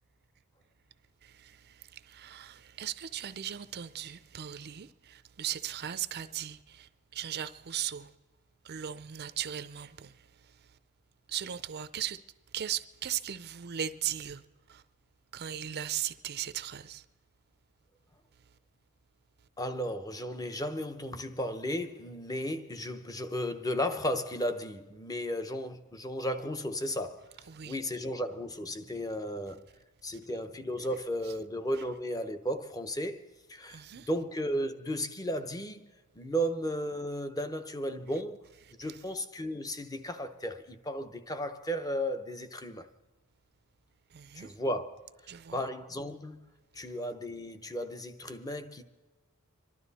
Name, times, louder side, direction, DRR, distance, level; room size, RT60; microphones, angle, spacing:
voice 1, 1.2-8.1 8.6-10.1 11.3-12.2 12.5-14.4 14.7-14.8 15.3-17.0 27.5-27.8 33.7-34.1 44.1-44.5 45.3-45.7, right 10 dB, 50° right, 0.5 m, -38 dB
voice 2, 19.6-27.3 27.6-29.6 30.0-38.4 38.8-42.9 44.3-45.1 45.5-46.4 46.7-48.8, equal, 15° left, 0.8 m, -34 dB
26.5 x 12.0 x 4.1 m
head